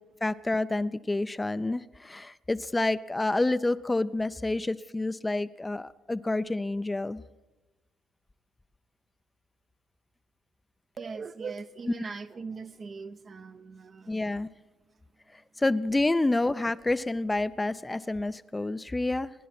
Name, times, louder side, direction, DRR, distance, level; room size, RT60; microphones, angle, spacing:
voice 1, 0.2-7.2 14.1-14.5 15.6-19.3, left 2 dB, 15° left, 0.5 m, -28 dB
voice 2, 11.0-14.4, right 5 dB, 45° right, 0.7 m, -40 dB
26.5 x 11.0 x 4.3 m
hypercardioid pair, 55°, 0 cm